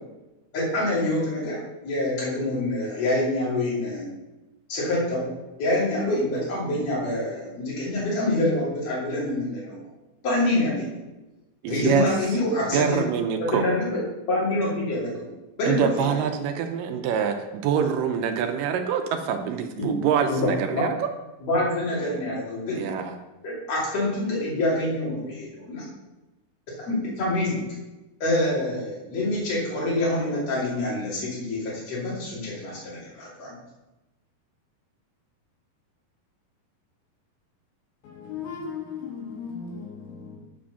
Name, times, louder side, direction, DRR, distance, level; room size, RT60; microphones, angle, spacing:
voice 1, 0.5-1.6 1.8-4.1 4.7-5.2 5.6-9.8 10.2-10.9 11.7-13.0 13.5-13.9 14.3-15.2 15.6-16.2 19.8-19.9 20.3-20.9 21.4-22.8 23.4-25.9 26.8-27.7 28.2-33.5, left 1 dB, 45° left, 3.8 m, -26 dB
voice 2, 11.6-12.1 12.6-13.7 15.6-21.1 22.7-23.2, right 7 dB, 80° right, 2.1 m, -25 dB
voice 3, 38.0-40.4, left 6 dB, 80° left, 3.5 m, -36 dB
9.3 x 5.1 x 5.6 m
omnidirectional pair, 4.3 m